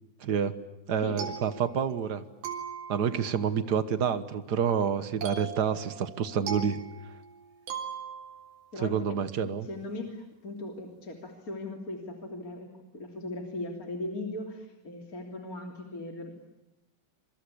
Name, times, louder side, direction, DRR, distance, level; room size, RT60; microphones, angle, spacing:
voice 1, 0.2-0.5 0.9-2.2 2.9-6.8 8.8-9.7, right 7 dB, 55° right, 12 dB, 1.1 m, -28 dB
sound 1, 0.9-2.1 2.4-3.3 5.2-8.6, right 7 dB, 85° right, 5.2 m, -39 dB
voice 2, 9.6-16.3, left 2 dB, 25° left, 3 dB, 3.3 m, -38 dB
27.5 x 24.0 x 8.5 m, 0.94 s
omnidirectional pair, 3.7 m